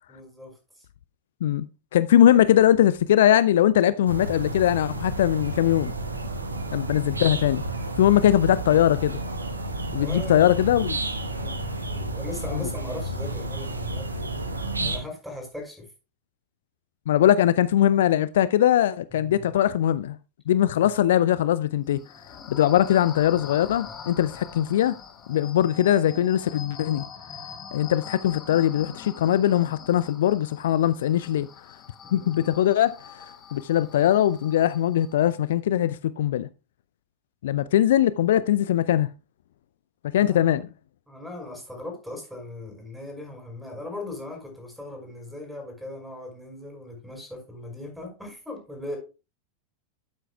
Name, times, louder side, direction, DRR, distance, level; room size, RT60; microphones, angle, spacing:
voice 1, 0.1-0.5 6.5-6.7 10.0-10.5 11.4-14.2 14.8-15.9 19.1-19.5 20.8-20.9 25.6-25.8 32.0-32.3 40.1-40.4 41.1-49.0, left 2 dB, 5° right, 5.5 m, -39 dB
voice 2, 1.9-5.9 6.7-7.6 8.0-9.2 9.9-11.0 12.5-12.6 14.8-14.9 17.1-20.2 20.5-22.0 22.5-24.9 25.3-27.0 27.7-31.5 32.1-33.0 33.5-36.5 37.4-39.1 40.1-40.6, left 11 dB, 60° left, 0.3 m, -21 dB
sound 1, 4.1-15.0, right 2 dB, 80° right, 1.3 m, -31 dB
sound 2, 21.8-35.3, left 6 dB, 25° left, 2.0 m, -44 dB
12.5 x 7.8 x 2.3 m
figure-of-eight pair, 90°, 0 cm